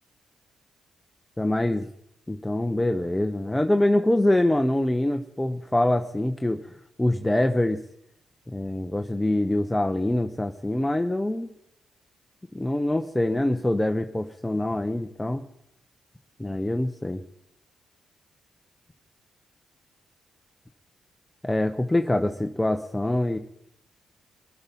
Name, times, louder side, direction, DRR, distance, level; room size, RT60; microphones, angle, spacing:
voice 1, 1.4-1.9 2.3-7.8 8.5-11.5 12.5-15.4 16.4-17.2 21.4-23.4, left 1 dB, 10° left, 6 dB, 0.9 m, -24 dB
23.5 x 8.9 x 5.5 m, 0.76 s
cardioid pair, 80°, 0 cm